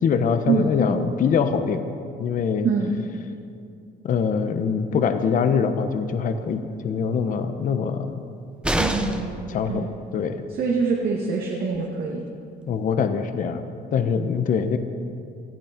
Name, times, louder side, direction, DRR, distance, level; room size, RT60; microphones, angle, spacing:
voice 1, 0.0-1.8 2.2-2.7 4.0-8.1 9.5-9.9 10.1-10.4 12.7-13.6 13.9-14.8, left 6 dB, 50° left, 8 dB, 1.1 m, -23 dB
sound 1, 8.6-9.4 11.3-11.4 11.7-11.8, right 1 dB, 5° right, 1.1 m, -25 dB
voice 2, 8.8-9.9 10.5-12.2, right 5 dB, 65° right, -1 dB, 2.1 m, -25 dB
18.5 x 14.0 x 5.2 m, 2.4 s
cardioid pair, 110°, 17 cm